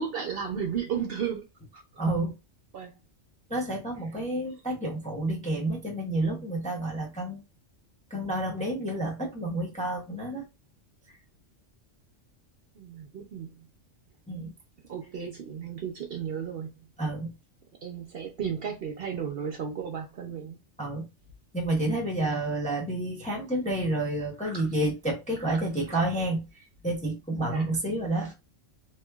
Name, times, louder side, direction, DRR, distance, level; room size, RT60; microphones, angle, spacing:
voice 1, 0.0-1.8 2.7-2.9 12.7-13.7 14.9-16.7 17.8-20.6 24.4-24.7 25.9-26.0 27.5-27.7, right 7 dB, 60° right, 0.7 m, -34 dB
voice 2, 2.0-2.3 3.5-7.4 8.1-10.4 14.3-14.5 17.0-17.3 20.8-21.1 21.5-28.3, right 1 dB, 10° left, 0.5 m, -30 dB
3.1 x 2.9 x 2.3 m
omnidirectional pair, 1.3 m